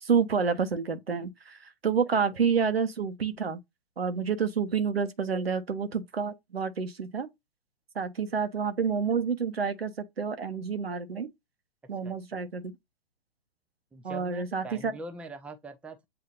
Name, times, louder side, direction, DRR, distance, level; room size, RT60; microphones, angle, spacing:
voice 1, 0.0-3.6 4.0-7.3 7.9-11.3 11.9-12.7 14.0-14.9, right 6 dB, 85° right, 1.0 m, -29 dB
voice 2, 12.0-12.5 13.9-16.0, right 3 dB, 5° right, 0.5 m, -43 dB
7.8 x 2.7 x 2.5 m
figure-of-eight pair, 110°, 30 cm